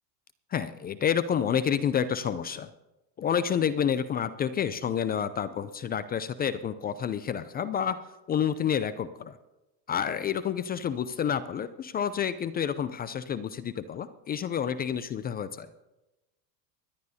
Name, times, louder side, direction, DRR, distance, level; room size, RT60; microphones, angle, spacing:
voice 1, 0.5-2.7 3.2-8.0 8.3-9.4 9.9-15.7, left 8 dB, 20° left, 14 dB, 0.3 m, -29 dB
24.5 x 11.5 x 2.8 m, 1.0 s
hypercardioid pair, 95°, 50 cm